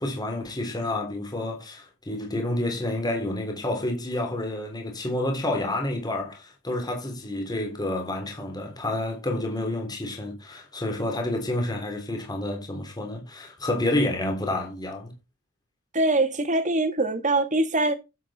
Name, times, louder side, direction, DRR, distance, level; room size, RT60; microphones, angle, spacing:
voice 1, 0.0-15.1, left 1 dB, 20° left, 3.4 m, -29 dB
voice 2, 15.9-17.9, right 2 dB, 35° right, 2.0 m, -23 dB
12.0 x 8.3 x 4.3 m
head